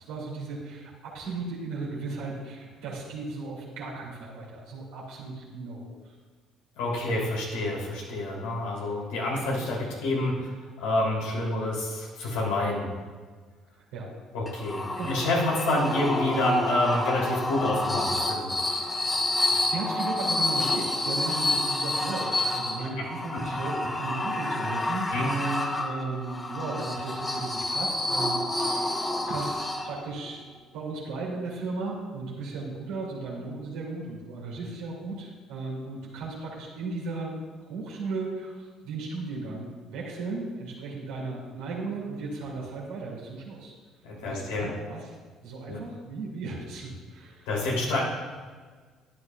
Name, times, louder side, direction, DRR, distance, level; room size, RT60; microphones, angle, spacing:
voice 1, 0.0-6.1 13.9-14.1 15.0-15.1 19.2-30.4 30.7-43.7 44.2-45.1 45.4-47.5, right 3 dB, 80° right, -5 dB, 2.5 m, -36 dB
voice 2, 6.7-10.5 10.8-12.9 14.3-18.6 23.3-23.4 25.1-25.3 44.0-44.7 45.7-45.8 47.5-48.0, left 1 dB, 80° left, -4 dB, 3.1 m, -28 dB
sound 1, 14.5-30.2, left 2 dB, 20° left, 1.1 m, -29 dB
13.0 x 9.7 x 2.4 m, 1.5 s
hypercardioid pair, 65°, 0 cm